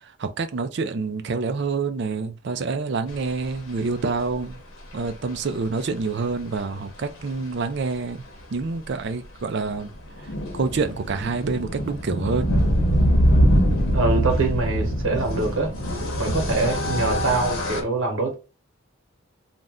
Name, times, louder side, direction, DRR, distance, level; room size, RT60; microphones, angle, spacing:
voice 1, 0.2-4.6 4.9-8.2 8.5-9.9 10.5-12.5, right 4 dB, 55° right, 0.4 m, -27 dB
sound 1, 5.1-5.2 6.4-6.5 6.7-6.8 7.0-7.2 9.7-17.8, equal, 80° left, 0.9 m, -23 dB
voice 2, 13.9-15.7 16.2-18.3, right 3 dB, 70° right, 1.1 m, -24 dB
2.5 x 2.1 x 3.4 m
head